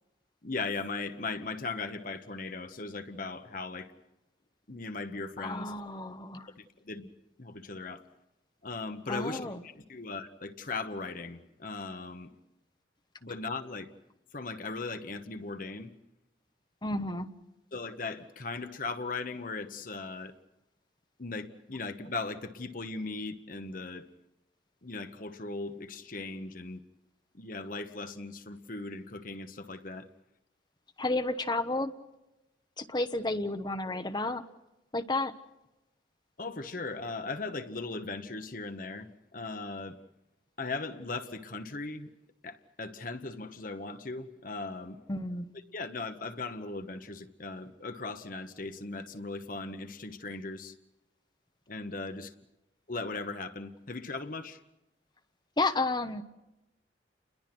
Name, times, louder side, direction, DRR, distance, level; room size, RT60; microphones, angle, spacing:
voice 1, 0.4-3.9 4.7-5.7 6.6-7.1 7.4-8.0 8.6-12.3 13.2-13.9 14.3-15.9 17.7-20.3 21.2-24.1 24.8-26.8 27.3-30.1 36.4-40.0 40.6-42.1 42.4-45.0 45.7-50.7 51.7-52.3 52.9-54.6, left 3 dB, 45° left, 8 dB, 1.1 m, -38 dB
voice 2, 5.4-6.5 9.1-9.6 16.8-17.3 31.0-31.9 32.8-34.4 34.9-35.3 45.1-45.5 55.6-56.2, left 2 dB, 25° left, 9 dB, 0.9 m, -31 dB
30.0 x 21.5 x 6.1 m, 0.96 s
head